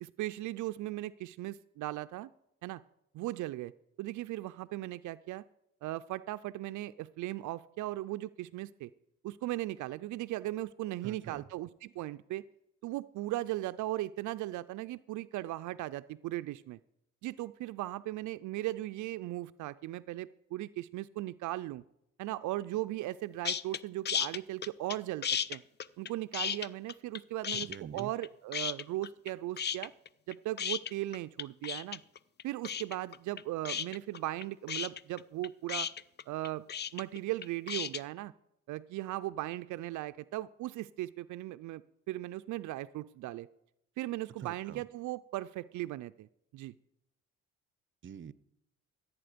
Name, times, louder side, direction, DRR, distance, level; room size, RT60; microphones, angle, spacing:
voice 1, 0.0-2.3 2.6-2.8 3.1-3.7 4.0-5.4 5.8-8.9 9.2-12.4 12.8-16.8 17.2-21.8 22.2-25.6 26.0-29.9 30.3-32.0 32.4-35.9 36.3-36.7 36.9-38.3 38.7-43.5 44.0-46.3 46.5-46.7, right 16 dB, 80° right, 13 dB, 0.4 m, -38 dB
voice 2, 11.0-11.5 27.5-28.1 44.4-44.8 48.0-48.3, right 9 dB, 40° right, 18 dB, 0.7 m, -45 dB
sound 1, 23.4-23.8 24.1-25.0 25.2-27.2 27.4-28.3 28.5-29.3 29.6-38.0, left 8 dB, 35° left, 0.5 m, -34 dB
15.5 x 8.5 x 5.1 m, 0.80 s
cardioid pair, 90°, 30 cm